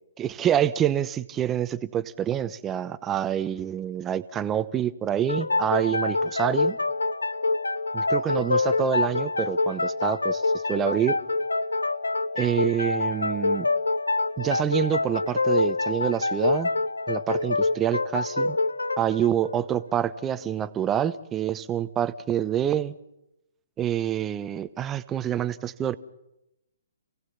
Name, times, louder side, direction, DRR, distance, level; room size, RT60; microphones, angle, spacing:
voice 1, 0.2-6.8 7.9-11.2 12.3-13.7 14.4-16.7 17.1-18.6 19.0-22.9 23.8-25.9, right 10 dB, 20° right, 15 dB, 1.0 m, -27 dB
sound 1, 5.3-20.6, left 3 dB, 80° left, 0.7 m, -26 dB
28.5 x 17.5 x 5.8 m, 0.87 s
figure-of-eight pair, 130°, 0 cm